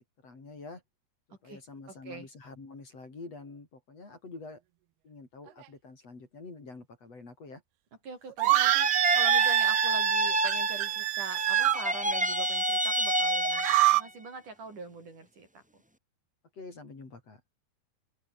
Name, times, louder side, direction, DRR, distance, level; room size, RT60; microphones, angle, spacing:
voice 1, 0.2-0.8 1.3-4.6 5.0-7.6 8.4-8.5 16.5-17.4, left 3 dB, 40° left, 6.0 m, -47 dB
voice 2, 8.0-15.8, right 3 dB, 50° right, 7.4 m, -43 dB
sound 1, 8.4-11.1 11.3-14.1, equal, 5° right, 1.0 m, -29 dB
Horrified Female Scream, 8.4-11.8 13.4-14.0, right 18 dB, 85° right, 2.7 m, -25 dB
open air
omnidirectional pair, 4.7 m